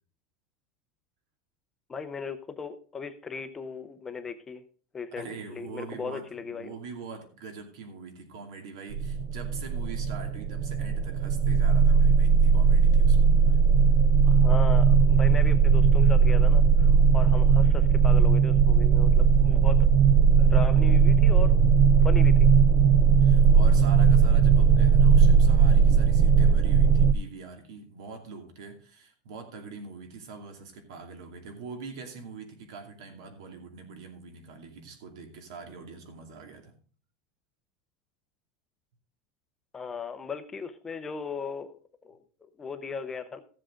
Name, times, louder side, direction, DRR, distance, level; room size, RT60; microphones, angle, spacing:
voice 1, 1.9-4.6 4.9-6.7 14.3-19.9 20.4-21.6 22.0-22.3 39.7-41.8 42.0-42.2 42.6-43.4, left 5 dB, 15° left, 9 dB, 0.6 m, -37 dB
voice 2, 5.2-13.6 23.2-36.8, right 4 dB, 75° right, 5 dB, 2.4 m, -43 dB
sound 1, 8.9-27.1, right 6 dB, 45° right, 0.5 m, -19 dB
14.5 x 7.6 x 3.7 m, 0.42 s
supercardioid pair, 165°, 3 cm